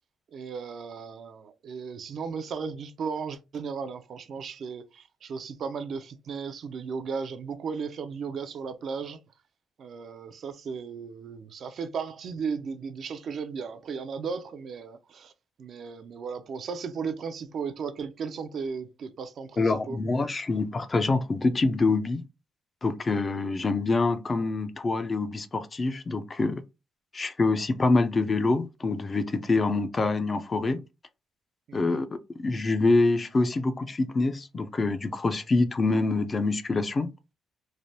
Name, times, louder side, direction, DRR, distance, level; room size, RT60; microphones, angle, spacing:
voice 1, 0.3-9.2 9.8-15.3 15.6-20.0 31.7-32.0, right 5 dB, 60° right, 0.4 m, -35 dB
voice 2, 19.6-22.2 22.8-26.6 27.1-30.8 31.7-32.1 32.4-37.1, left 3 dB, 30° left, 0.4 m, -25 dB
3.2 x 2.1 x 2.6 m
cardioid pair, 90°, 0 cm